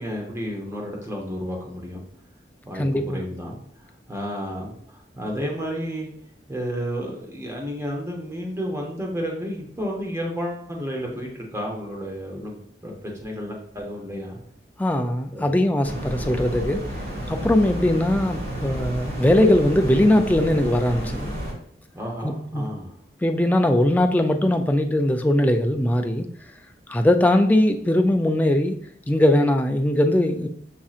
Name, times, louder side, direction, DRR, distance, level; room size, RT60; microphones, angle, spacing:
voice 1, 0.0-2.0 2.6-3.6 4.1-6.1 6.5-12.9 13.2-14.4 15.3-15.5 21.9-22.9, equal, 15° right, 0 dB, 0.8 m, -31 dB
voice 2, 2.8-3.2 14.8-16.8 17.3-21.3 22.2-22.7 23.2-26.3 26.9-28.8 29.1-30.5, left 1 dB, 10° left, 5 dB, 0.3 m, -20 dB
sound 1, 15.8-21.5, equal, 55° right, 1.4 m, -31 dB
7.2 x 2.7 x 2.4 m, 0.64 s
head